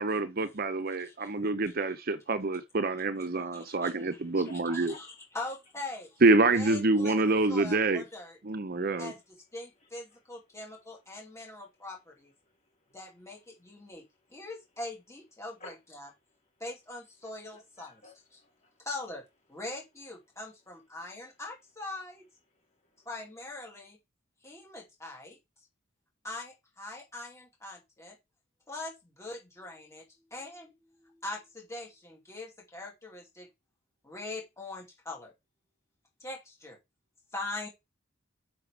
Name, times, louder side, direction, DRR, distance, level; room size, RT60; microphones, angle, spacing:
voice 1, 0.0-4.9 6.2-8.0 8.4-9.1, right 3 dB, 45° right, 0.7 m, -26 dB
voice 2, 1.0-1.3 1.7-1.8 3.5-3.9 4.4-5.1 5.3-6.2 6.5-8.4 9.0-9.2 9.5-12.3 12.9-14.0 14.3-16.1 16.6-18.0 18.8-19.2 19.5-22.2 23.1-24.0 24.4-25.4 26.2-28.2 28.7-30.0 30.3-33.5 34.0-35.3 36.2-36.8 37.3-37.7, left 2 dB, 15° left, 2.5 m, -42 dB
voice 3, 4.4-5.0 8.8-9.1 9.8-10.2 11.4-11.5 12.4-13.0 13.6-13.9 14.3-14.5 15.6-15.8 17.5-18.9 22.5-23.1, left 3 dB, 35° left, 4.4 m, -54 dB
6.2 x 6.0 x 5.0 m
head